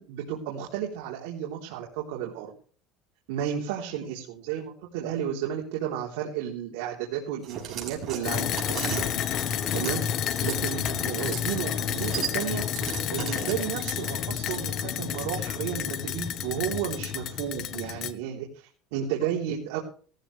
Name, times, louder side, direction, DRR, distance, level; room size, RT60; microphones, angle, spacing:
voice 1, 0.0-2.5 3.3-8.6 9.7-10.0 10.4-12.6 13.1-19.8, right 9 dB, 90° right, -1 dB, 3.6 m, -32 dB
sound 1, 7.4-10.6 11.0-11.5 11.7-14.4, right 9 dB, 40° right, 6.1 m, -36 dB
sound 2, 8.2-18.1, left 9 dB, 45° left, 1.3 m, -30 dB
17.5 x 14.0 x 3.4 m, 0.43 s
cardioid pair, 150°, 0 cm